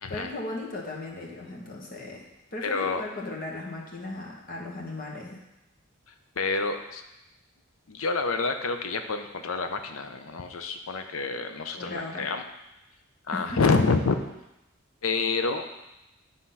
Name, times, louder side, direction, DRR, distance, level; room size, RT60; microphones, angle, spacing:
voice 1, 0.1-5.4 11.8-12.3 13.3-13.8, left 2 dB, 40° left, -2 dB, 1.3 m, -36 dB
voice 2, 2.6-3.0 6.4-7.0 7.9-12.4 13.3-14.1 15.0-15.7, left 4 dB, 80° left, 7 dB, 0.7 m, -27 dB
9.6 x 3.7 x 5.6 m, 0.93 s
head